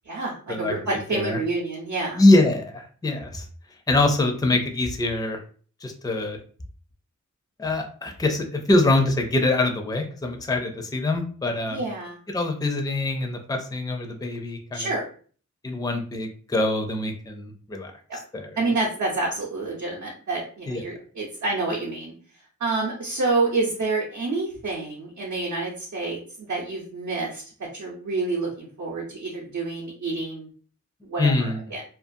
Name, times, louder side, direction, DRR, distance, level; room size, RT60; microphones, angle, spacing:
voice 1, 0.1-2.2 11.7-12.2 14.7-15.0 18.6-22.1 22.6-27.4 27.7-30.5 31.0-31.8, right 3 dB, 70° right, -4 dB, 0.7 m, -28 dB
voice 2, 2.2-3.5 3.9-5.4 5.8-6.4 7.6-11.8 12.3-14.9 15.6-17.9 18.3-18.6 20.7-20.8 31.2-31.6, left 2 dB, 15° left, 4 dB, 0.4 m, -24 dB
2.5 x 2.3 x 2.5 m, 0.43 s
wide cardioid pair, 85°, 30 cm